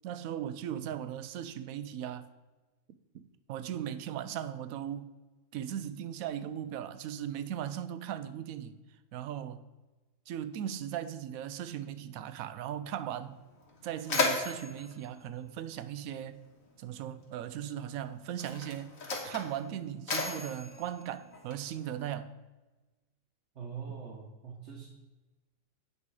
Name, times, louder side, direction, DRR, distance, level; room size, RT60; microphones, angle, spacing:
voice 1, 0.0-2.3 3.1-5.1 5.5-8.8 9.1-9.6 10.3-13.4 13.8-16.4 16.8-18.9 19.2-22.3, right 10 dB, 80° right, 1.0 m, -38 dB
Mechanisms, 13.1-13.2 13.6-16.3 17.3-17.5 18.3-21.9, left 3 dB, 75° left, 1.8 m, -35 dB
voice 2, 23.5-24.9, right 6 dB, 55° right, 1.3 m, -43 dB
8.2 x 5.4 x 4.7 m
omnidirectional pair, 1.4 m